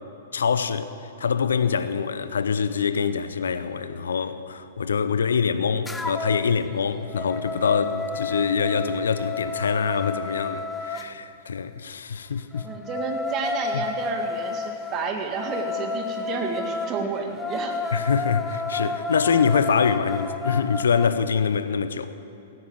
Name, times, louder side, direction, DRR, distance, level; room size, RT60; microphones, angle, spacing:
voice 1, 0.3-0.9 1.2-12.7 13.7-13.8 17.9-22.1, left 6 dB, 80° left, 0.8 m, -24 dB
sound 1, 5.8-6.5 6.9-11.1 12.5-21.1, left 3 dB, 10° left, 0.8 m, -31 dB
voice 2, 12.6-17.8, right 5 dB, 35° right, 2.1 m, -31 dB
16.5 x 10.0 x 7.5 m
hypercardioid pair, 110°, 0 cm